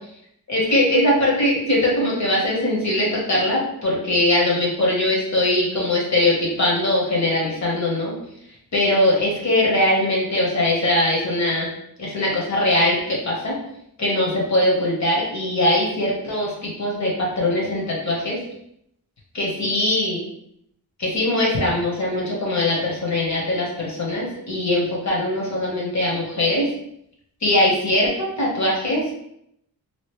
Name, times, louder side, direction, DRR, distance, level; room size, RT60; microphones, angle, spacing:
voice 1, 0.5-8.1 8.7-11.7 12.0-13.5 14.0-18.4 19.3-20.2 21.0-26.7 27.4-29.1, left 1 dB, 45° left, -4 dB, 1.2 m, -21 dB
3.1 x 2.5 x 3.1 m, 0.75 s
wide cardioid pair, 150°, 37 cm